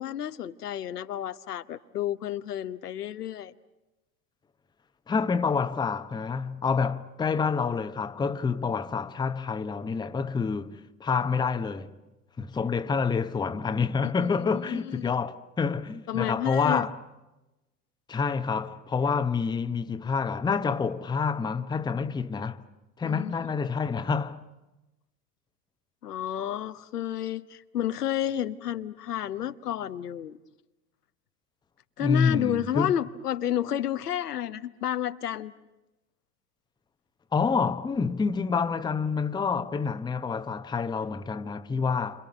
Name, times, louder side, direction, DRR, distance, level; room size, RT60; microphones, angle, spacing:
voice 1, 0.0-3.5 14.0-15.1 16.1-16.9 23.0-23.3 26.0-30.4 32.0-35.5, left 11 dB, 70° left, 1.1 m, -31 dB
voice 2, 5.1-11.9 12.4-16.9 18.1-22.6 23.0-24.4 32.0-32.9 37.3-42.3, left 5 dB, 10° left, 0.8 m, -28 dB
29.5 x 26.5 x 6.7 m
figure-of-eight pair, 85°, 48 cm